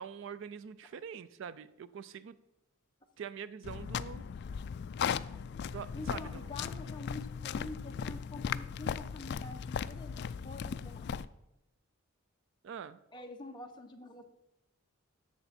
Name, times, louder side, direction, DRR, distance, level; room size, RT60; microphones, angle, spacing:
voice 1, 0.0-2.4 3.2-4.2 5.6-6.2 12.6-13.0, right 7 dB, 60° right, 16 dB, 0.4 m, -44 dB
sound 1, 3.6-11.3, left 7 dB, 50° left, 0.3 m, -37 dB
voice 2, 5.9-11.3 13.1-14.2, left 2 dB, 20° left, 3 dB, 0.9 m, -47 dB
11.0 x 7.0 x 4.3 m, 0.91 s
head